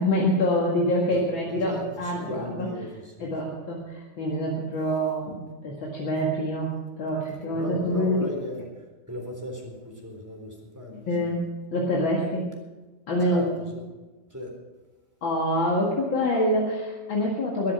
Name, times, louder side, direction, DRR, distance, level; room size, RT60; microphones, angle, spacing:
voice 1, 0.0-2.7 3.2-8.3 11.1-12.5 13.1-13.4 15.2-17.7, equal, 70° left, -3 dB, 2.8 m, -26 dB
voice 2, 1.1-3.3 7.5-11.3 13.2-13.8 14.3-14.6, left 1 dB, 10° right, 0 dB, 3.6 m, -37 dB
22.5 x 7.6 x 6.2 m, 1.2 s
omnidirectional pair, 2.3 m